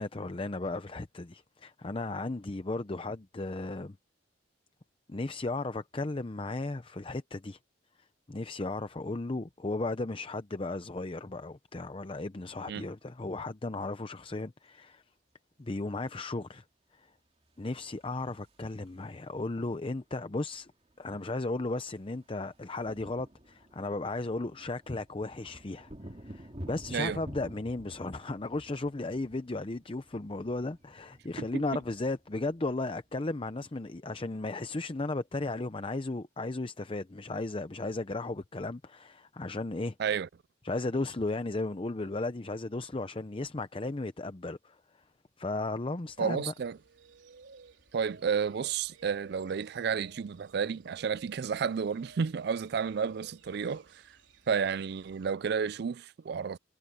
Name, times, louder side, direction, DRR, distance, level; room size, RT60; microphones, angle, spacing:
voice 1, 0.0-4.0 5.1-7.6 8.3-15.0 15.6-16.6 17.0-17.1 17.6-20.7 21.0-25.9 26.2-40.0 40.6-44.8 45.4-46.5, left 2 dB, 30° left, 0.6 m, -35 dB
sound 1, 17.7-19.2 20.5-20.6 20.8-21.1 21.3-33.4, equal, 35° right, 2.5 m, -50 dB
sound 2, 46.1-55.4, right 4 dB, 80° right, 4.5 m, -57 dB
voice 2, 46.2-46.8 47.9-53.9 54.5-56.6, right 6 dB, 60° right, 0.4 m, -31 dB
head